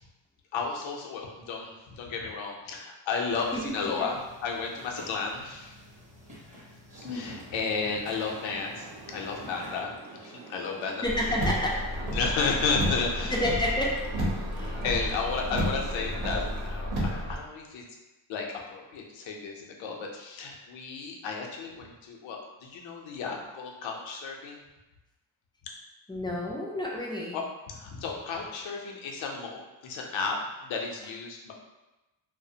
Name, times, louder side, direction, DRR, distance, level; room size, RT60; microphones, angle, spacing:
voice 1, 0.5-5.7 7.1-9.9 10.2-11.0 12.1-13.3 14.6-17.8 18.3-18.5 18.7-24.6 27.3-31.5, left 4 dB, 75° left, 0 dB, 0.6 m, -33 dB
sound 1, 3.3-9.8, left 2 dB, 15° right, 0.7 m, -47 dB
voice 2, 3.5-4.1 11.0-11.8 12.4-12.5 13.3-13.9 14.5-14.8 26.1-27.4, left 1 dB, 10° left, -3 dB, 0.3 m, -30 dB
sound 2, 6.9-16.7, right 2 dB, 50° right, 0.5 m, -47 dB
Car, 11.0-17.4, equal, 80° right, 0.8 m, -31 dB
2.4 x 2.1 x 2.7 m, 1.0 s
cardioid pair, 95°, 47 cm